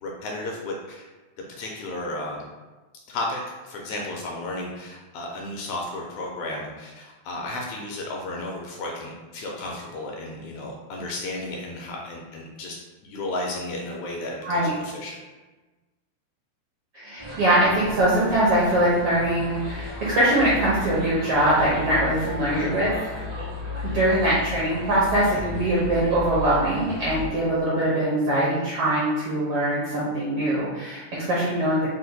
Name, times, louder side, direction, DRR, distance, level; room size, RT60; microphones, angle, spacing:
voice 1, 0.0-1.0 1.6-2.4 3.1-12.8 13.0-15.2 22.5-22.8 24.1-24.3 25.2-25.4, left 2 dB, 80° left, -1 dB, 1.8 m, -33 dB
voice 2, 17.0-22.9 23.8-31.9, right 1 dB, 75° right, -8 dB, 1.3 m, -22 dB
sound 1, 17.2-27.3, left 1 dB, 40° right, 0.5 m, -35 dB
4.9 x 2.1 x 3.9 m, 1.2 s
omnidirectional pair, 3.6 m